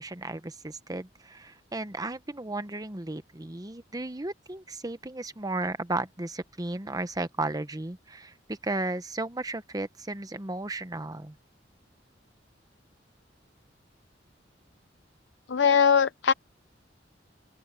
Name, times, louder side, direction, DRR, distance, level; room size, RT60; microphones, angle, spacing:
voice 1, 0.0-11.3, right 2 dB, 20° right, 1.0 m, -34 dB
voice 2, 15.5-16.3, left 7 dB, 70° left, 0.5 m, -21 dB
open air
head